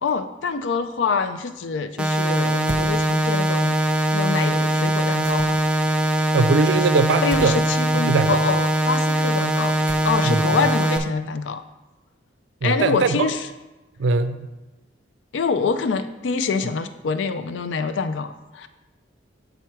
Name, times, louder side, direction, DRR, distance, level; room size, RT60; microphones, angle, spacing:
voice 1, 0.0-5.6 6.7-6.8 7.2-11.6 12.6-13.5 15.3-18.7, left 5 dB, 80° left, 10 dB, 0.4 m, -26 dB
sound 1, 2.0-11.0, right 1 dB, 5° right, 0.4 m, -21 dB
sound 2, 2.7-2.9 5.2-5.8 7.3-7.6 9.9-10.4, right 2 dB, 50° right, 0.8 m, -34 dB
voice 2, 6.3-7.6 8.1-8.4 10.2-10.5 12.6-13.2 14.0-14.5, right 4 dB, 75° right, 11 dB, 0.4 m, -21 dB
6.6 x 4.5 x 4.6 m, 1.1 s
head